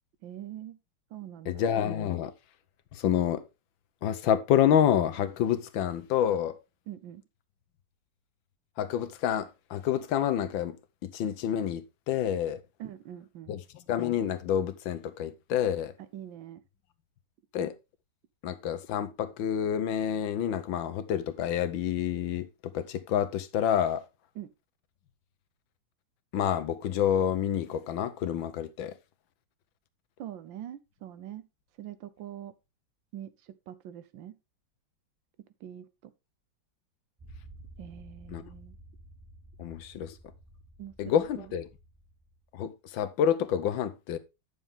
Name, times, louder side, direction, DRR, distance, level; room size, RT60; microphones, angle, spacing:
voice 1, 0.2-0.8 1.1-1.6 6.9-7.2 12.8-13.5 16.0-16.6 24.3-24.5 30.2-31.5 31.8-32.5 33.1-34.4 35.6-36.1 37.8-38.8 40.8-41.5, right 11 dB, 75° right, 1.5 m, -43 dB
voice 2, 1.5-2.3 2.9-3.4 4.0-6.6 8.8-10.8 11.0-12.6 13.5-13.6 13.9-15.9 17.5-17.7 18.4-24.0 26.3-28.9 38.3-38.4 39.6-40.1 41.0-41.6 42.5-44.2, left 9 dB, 80° left, 1.6 m, -28 dB
sound 1, 37.2-42.5, right 2 dB, 20° right, 0.8 m, -52 dB
9.5 x 6.8 x 3.5 m
omnidirectional pair, 2.1 m